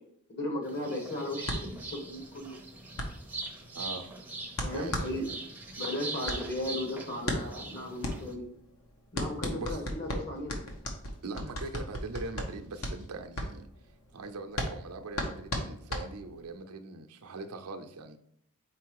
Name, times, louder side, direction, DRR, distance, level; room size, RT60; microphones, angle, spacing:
voice 1, 0.3-2.6 4.6-5.3 5.7-8.5 9.1-10.6, left 1 dB, 50° left, 1.6 m, -36 dB
sound 1, 0.6-8.3, right 3 dB, 10° right, 0.6 m, -41 dB
sound 2, 1.4-16.6, left 1 dB, 65° left, 1.1 m, -36 dB
voice 2, 3.7-4.2 4.5-5.4 9.5-9.9 11.2-13.7 14.1-18.2, right 3 dB, 80° right, 0.6 m, -41 dB
4.5 x 4.4 x 4.6 m
head